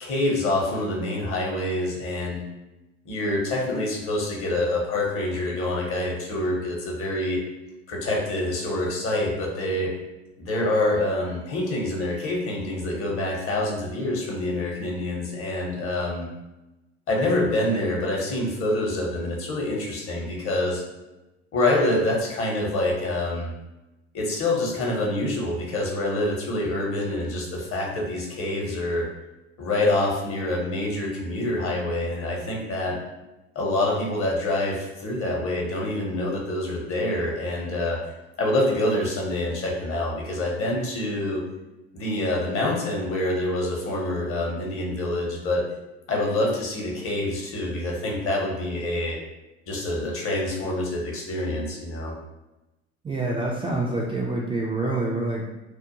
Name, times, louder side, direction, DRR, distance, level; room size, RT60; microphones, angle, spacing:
voice 1, 0.0-2.4 3.0-7.4 7.9-9.9 10.4-16.3 17.1-20.8 21.5-23.5 24.1-29.1 29.6-33.0 33.5-38.0 38.4-41.4 41.9-45.6 46.1-49.2 49.7-52.1, left 1 dB, 40° left, -2 dB, 0.9 m, -26 dB
voice 2, 53.0-55.4, right 2 dB, 15° right, -4 dB, 0.4 m, -26 dB
2.4 x 2.1 x 2.9 m, 1.0 s
hypercardioid pair, 70°, 33 cm